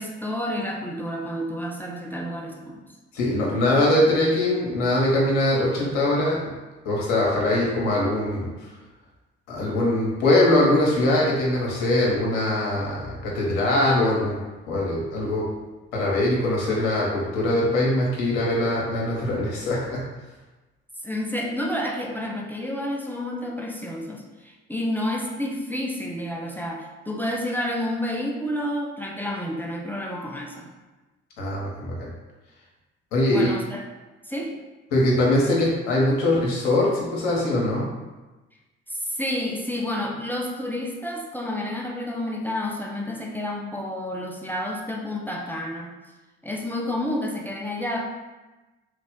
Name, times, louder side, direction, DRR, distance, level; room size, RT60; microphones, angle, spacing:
voice 1, 0.0-2.8 21.0-30.7 33.3-33.8 34.2-34.6 38.9-45.9 46.4-48.0, left 1 dB, 5° left, -1 dB, 0.5 m, -30 dB
voice 2, 3.1-6.5 6.8-8.5 9.5-14.4 14.7-15.5 15.9-20.0 31.4-32.1 33.1-33.5 34.9-37.9, left 1 dB, 65° left, -4 dB, 1.0 m, -22 dB
3.2 x 2.4 x 3.6 m, 1.1 s
figure-of-eight pair, 50°, 35 cm